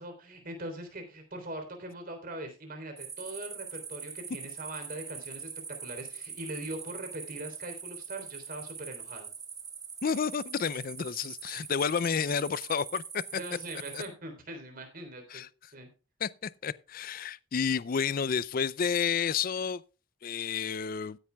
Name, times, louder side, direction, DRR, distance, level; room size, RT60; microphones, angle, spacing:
voice 1, 0.0-9.3 13.3-15.4 15.7-15.9, right 1 dB, 45° right, 3.5 m, -41 dB
sound 1, 3.0-14.1, right 6 dB, 20° right, 1.6 m, -43 dB
voice 2, 10.0-13.2 13.9-14.0 15.3-15.5 16.2-19.8 20.2-21.2, left 6 dB, 45° left, 0.4 m, -30 dB
16.0 x 10.0 x 2.3 m
head